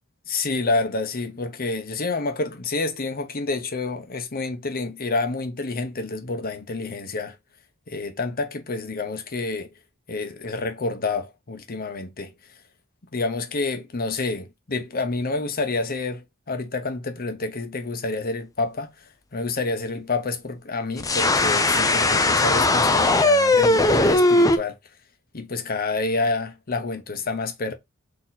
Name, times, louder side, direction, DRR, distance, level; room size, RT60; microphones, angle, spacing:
voice 1, 0.3-7.4 7.9-9.7 10.1-12.3 13.1-18.9 19.3-24.8 25.3-27.7, left 3 dB, 45° left, 0.9 m, -28 dB
sound 1, 21.0-24.6, left 2 dB, 15° left, 0.6 m, -18 dB
4.2 x 3.0 x 4.0 m
head